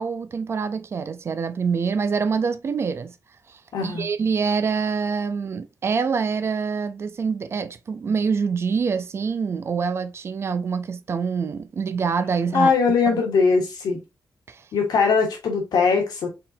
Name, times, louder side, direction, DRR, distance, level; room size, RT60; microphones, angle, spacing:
voice 1, 0.0-3.1 3.5-12.7 13.1-13.2 14.5-14.6, right 5 dB, 40° right, 0.4 m, -25 dB
voice 2, 3.7-4.1 12.5-14.0 14.7-16.3, left 5 dB, 90° left, 1.6 m, -20 dB
4.4 x 3.7 x 2.6 m
wide cardioid pair, 165°, 7 cm